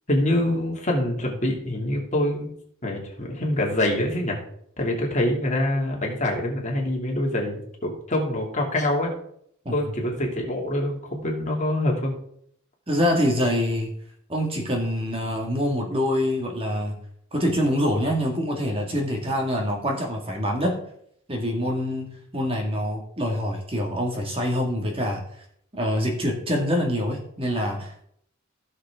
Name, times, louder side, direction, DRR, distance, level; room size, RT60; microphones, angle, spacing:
voice 1, 0.1-2.5 2.8-4.4 4.8-9.1 9.7-12.1, left 1 dB, 35° left, 0 dB, 2.7 m, -25 dB
voice 2, 12.9-13.9 14.3-17.0 17.3-20.8 21.3-25.2 25.7-28.0, equal, 30° right, 1 dB, 2.1 m, -25 dB
16.5 x 6.6 x 3.7 m, 0.67 s
head